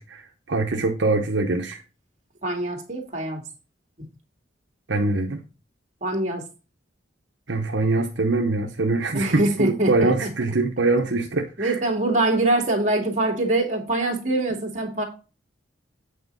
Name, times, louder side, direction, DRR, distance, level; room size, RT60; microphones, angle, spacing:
voice 1, 0.0-1.8 4.9-5.4 7.5-11.7, right 3 dB, 70° right, 3 dB, 0.9 m, -23 dB
voice 2, 2.4-3.4 6.0-6.4 9.1-10.3 11.6-15.0, right 2 dB, 40° right, 1 dB, 2.4 m, -24 dB
8.6 x 4.4 x 5.4 m, 0.32 s
head